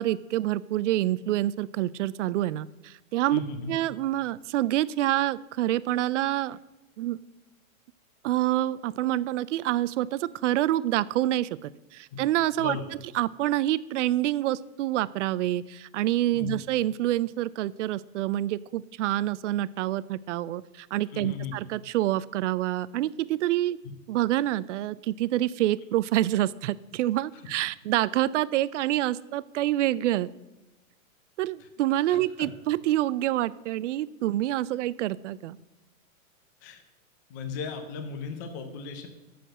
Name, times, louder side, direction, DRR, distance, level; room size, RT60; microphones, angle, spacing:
voice 1, 0.0-3.4 3.7-6.6 7.0-7.2 8.2-12.8 13.1-23.8 24.1-30.3 31.4-35.6, right 14 dB, 60° right, 19 dB, 0.5 m, -27 dB
voice 2, 3.3-3.7 12.1-12.2 12.6-12.8 16.3-16.5 21.1-21.5 27.3-27.4 31.6-31.7 32.1-32.5 36.6-36.8 37.3-39.1, left 5 dB, 15° left, 6 dB, 0.4 m, -36 dB
7.8 x 6.7 x 7.6 m, 1.0 s
supercardioid pair, 165°, 41 cm